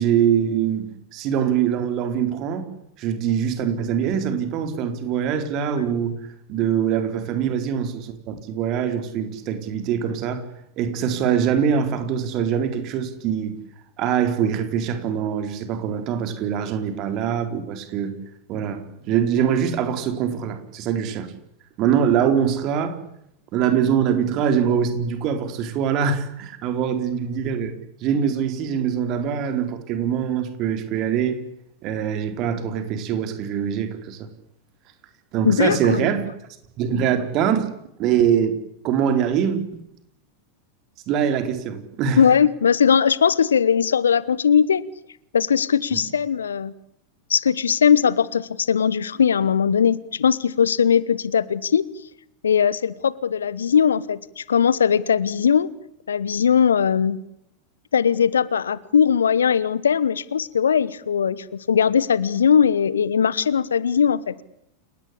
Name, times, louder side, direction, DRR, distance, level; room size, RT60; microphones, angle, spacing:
voice 1, 0.0-2.7 3.0-6.1 6.5-10.5 10.8-13.5 14.0-18.2 18.5-21.3 21.8-23.0 23.5-27.7 28.0-31.4 31.8-34.2 35.3-36.3 36.8-37.7 38.0-38.5 38.8-39.8 41.1-42.2 45.9-46.0, right 8 dB, 40° right, 4.2 m, -23 dB
voice 2, 35.4-36.1 42.2-44.8 45.3-46.7 47.3-51.8 52.4-55.7 56.1-57.2 57.9-64.4, left 7 dB, 70° left, 1.2 m, -19 dB
29.5 x 18.0 x 8.6 m
figure-of-eight pair, 90°, 0 cm